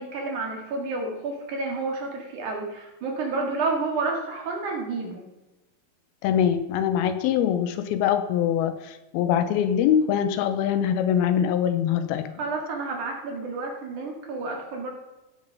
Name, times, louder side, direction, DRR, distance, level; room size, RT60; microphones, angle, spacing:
voice 1, 0.0-5.2 12.4-14.9, right 3 dB, 60° right, 1 dB, 3.2 m, -30 dB
voice 2, 6.2-12.3, left 9 dB, 90° left, 10 dB, 2.7 m, -23 dB
16.5 x 6.8 x 5.4 m, 1.0 s
omnidirectional pair, 4.4 m